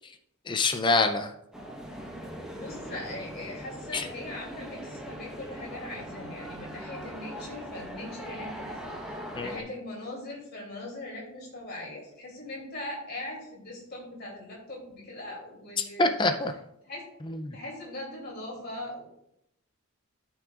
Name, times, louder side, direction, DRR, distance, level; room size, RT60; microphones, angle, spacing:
voice 1, 0.5-1.3 3.9-4.1 9.4-9.6 15.8-16.5 17.3-17.5, left 3 dB, 20° left, 7 dB, 0.4 m, -26 dB
sound 1, 1.5-9.6, equal, 5° right, 1.1 m, -40 dB
voice 2, 2.5-8.9 9.3-16.1 16.8-17.0 17.5-19.0, left 1 dB, 45° left, -2 dB, 2.8 m, -40 dB
13.0 x 5.9 x 2.4 m, 0.78 s
head